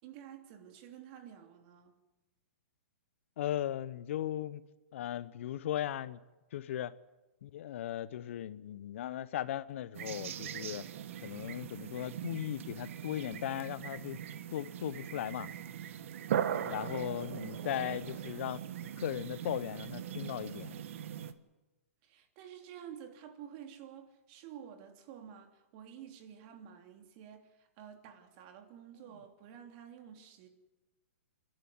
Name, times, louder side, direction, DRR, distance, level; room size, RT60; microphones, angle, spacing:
voice 1, 0.0-2.0 22.0-30.5, right 9 dB, 45° right, 3.1 m, -51 dB
voice 2, 3.4-4.6 4.9-6.2 6.5-7.0 7.4-10.9 11.2-14.2 14.5-15.5 16.6-18.6 19.0-20.8, left 11 dB, 60° left, 0.9 m, -37 dB
sound 1, 9.9-21.3, right 9 dB, 60° right, 1.4 m, -40 dB
27.5 x 12.0 x 9.5 m
hypercardioid pair, 130°, 8 cm